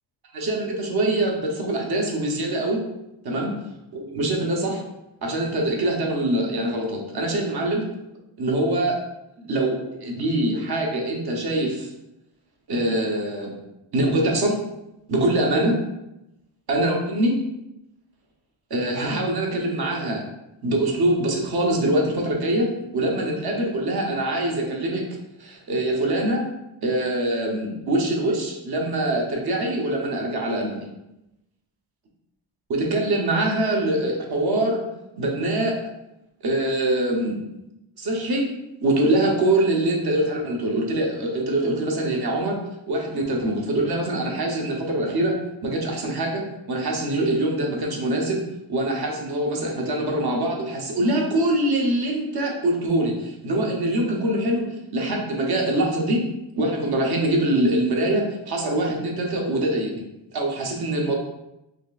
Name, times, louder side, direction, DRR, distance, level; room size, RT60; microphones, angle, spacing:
voice 1, 0.3-2.8 3.2-3.5 3.9-4.8 5.2-7.8 8.4-9.0 9.4-11.9 12.7-13.5 13.9-14.6 15.1-15.7 16.7-17.4 18.7-20.2 20.6-25.0 25.4-26.4 26.8-30.9 32.7-34.8 35.2-35.8 36.4-37.4 38.0-38.5 38.8-42.6 42.9-45.4 45.6-48.4 48.7-54.7 54.9-56.2 56.6-59.9 60.3-61.2, right 1 dB, 50° right, 0 dB, 0.9 m, -24 dB
4.4 x 3.2 x 2.4 m, 0.91 s
wide cardioid pair, 145°, 48 cm